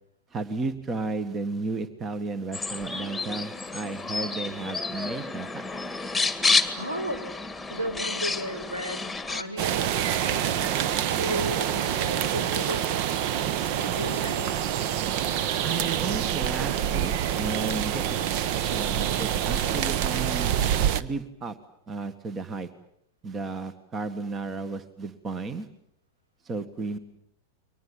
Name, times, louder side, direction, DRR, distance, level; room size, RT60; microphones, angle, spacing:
voice 1, 0.3-5.7 15.6-18.2 18.7-20.5 21.0-21.6 21.9-22.7 23.2-25.7 26.4-27.0, right 3 dB, 25° right, 13 dB, 1.7 m, -33 dB
sound 1, 2.5-9.4, left 3 dB, 5° left, 2.1 m, -30 dB
voice 2, 6.8-7.2 7.7-13.1 13.7-14.6, right 1 dB, 80° right, 7 dB, 4.8 m, -35 dB
sound 2, 9.6-21.0, right 10 dB, 45° right, 1.1 m, -26 dB
29.5 x 24.0 x 7.5 m, 0.73 s
figure-of-eight pair, 90°, 0 cm